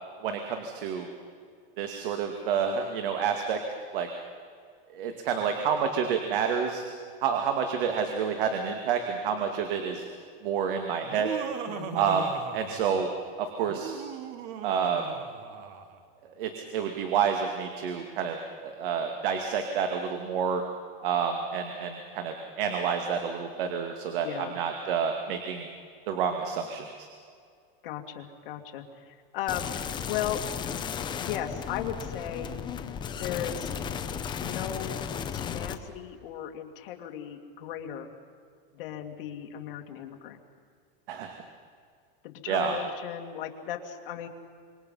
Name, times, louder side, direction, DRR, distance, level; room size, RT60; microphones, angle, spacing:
voice 1, 0.2-1.1 1.8-3.6 3.9-4.1 4.9-6.9 7.2-10.1 10.4-11.3 11.9-13.1 13.4-13.9 14.6-15.0 16.4-18.4 18.6-20.6 21.0-25.7 26.1-27.1 41.1-41.4 42.5-42.8, right 7 dB, 65° right, 4 dB, 2.3 m, -29 dB
Laughter, 11.0-13.2 13.7-16.0, right 9 dB, 45° right, 1.7 m, -39 dB
voice 2, 11.7-12.2 24.2-24.6 27.8-30.4 31.2-32.6 33.2-33.7 34.4-35.0 35.3-38.1 38.7-40.4 42.2-44.3, left 10 dB, 65° left, 3 dB, 2.6 m, -36 dB
sound 1, 29.5-35.7, left 7 dB, 15° left, 0.8 m, -34 dB
26.5 x 24.0 x 5.6 m, 2.2 s
supercardioid pair, 165°, 30 cm